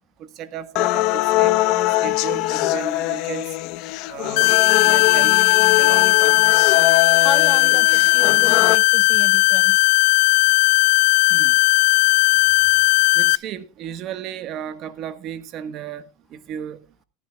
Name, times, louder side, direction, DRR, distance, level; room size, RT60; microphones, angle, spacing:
voice 1, 0.2-1.5 2.0-3.6 4.1-5.4 5.8-6.2 11.3-11.6 13.1-16.0 16.3-16.8, right 9 dB, 45° right, 1.4 m, -34 dB
sound 1, 0.8-8.8, left 17 dB, 55° left, 1.0 m, -22 dB
sound 2, 4.4-13.4, left 24 dB, 70° left, 0.5 m, -16 dB
voice 2, 7.2-9.9, left 5 dB, 20° left, 0.5 m, -32 dB
15.0 x 14.5 x 2.3 m
supercardioid pair, 135°, 0 cm